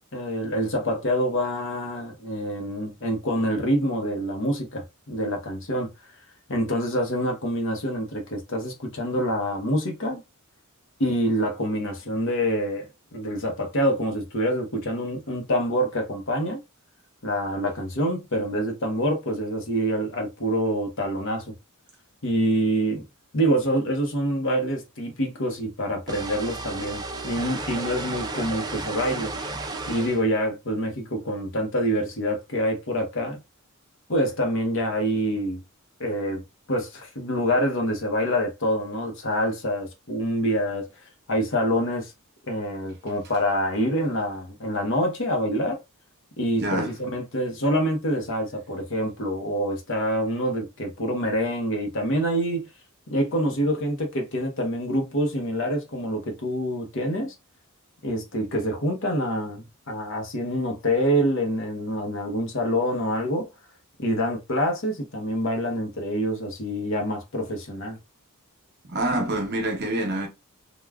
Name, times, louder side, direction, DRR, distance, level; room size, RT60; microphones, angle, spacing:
voice 1, 0.1-5.9 6.5-10.2 11.0-16.6 17.2-21.4 22.2-23.0 23.3-29.5 29.9-33.4 34.1-35.6 36.0-36.4 36.7-40.9 41.3-42.1 42.5-45.8 46.4-52.7 53.1-57.3 58.0-63.5 64.0-68.0, equal, 60° left, 0.8 m, -26 dB
sound 1, 26.1-30.2, right 2 dB, 20° right, 0.4 m, -33 dB
voice 2, 46.6-46.9 68.8-70.3, right 1 dB, 50° right, 0.8 m, -26 dB
3.4 x 2.2 x 2.3 m
head